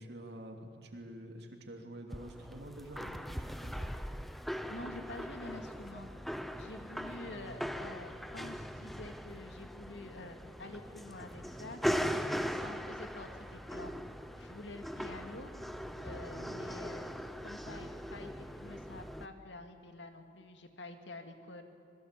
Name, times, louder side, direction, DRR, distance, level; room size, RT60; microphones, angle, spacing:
voice 1, 0.0-3.9 7.2-7.5 16.3-16.9, right 1 dB, 65° right, 4 dB, 3.0 m, -48 dB
sound 1, 2.1-19.3, equal, ahead, 0.8 m, -40 dB
voice 2, 4.7-6.1 6.6-11.8 12.4-13.9 14.4-15.5 16.0-17.2 17.4-21.6, left 2 dB, 80° left, 6 dB, 2.4 m, -48 dB
26.5 x 21.5 x 8.5 m, 2.5 s
head